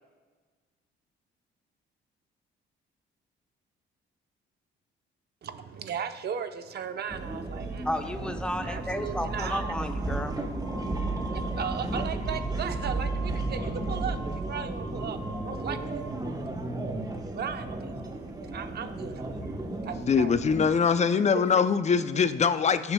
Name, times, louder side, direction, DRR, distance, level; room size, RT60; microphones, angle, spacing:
voice 1, 5.4-8.1 8.6-9.7 11.5-14.2 14.5-16.5 17.3-18.1 18.5-19.5 19.8-20.3, right 7 dB, 55° right, 9 dB, 0.8 m, -37 dB
sound 1, 7.1-20.7, right 2 dB, 20° right, 1.0 m, -33 dB
voice 2, 7.8-10.4, left 1 dB, 5° left, 6 dB, 0.8 m, -32 dB
sound 2, 8.5-16.2, equal, 75° left, 2.5 m, -45 dB
voice 3, 20.1-22.9, left 6 dB, 35° left, 12 dB, 0.5 m, -23 dB
14.5 x 7.1 x 2.2 m, 1.4 s
cardioid pair, 90°, 20 cm